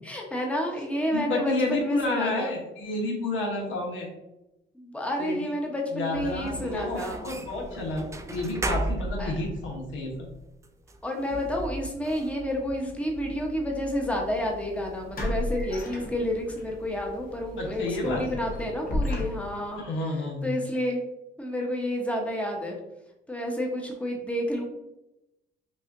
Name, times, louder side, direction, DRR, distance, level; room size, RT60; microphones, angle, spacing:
voice 1, 0.0-2.5 4.7-7.2 9.2-9.3 11.0-19.8 20.4-21.0 21.4-22.8 23.3-24.7, equal, 5° left, 0 dB, 0.9 m, -30 dB
voice 2, 1.1-4.1 5.2-5.5 5.9-10.1 17.6-18.2 19.7-20.6, left 2 dB, 80° left, -1 dB, 1.1 m, -30 dB
sound 1, 6.1-18.3, right 2 dB, 15° right, 0.4 m, -38 dB
sound 2, 14.0-14.2 15.1-16.6 17.0-17.2 17.6-19.7, left 2 dB, 45° left, 1.0 m, -32 dB
5.4 x 2.4 x 2.6 m, 0.92 s
cardioid pair, 90°, 20 cm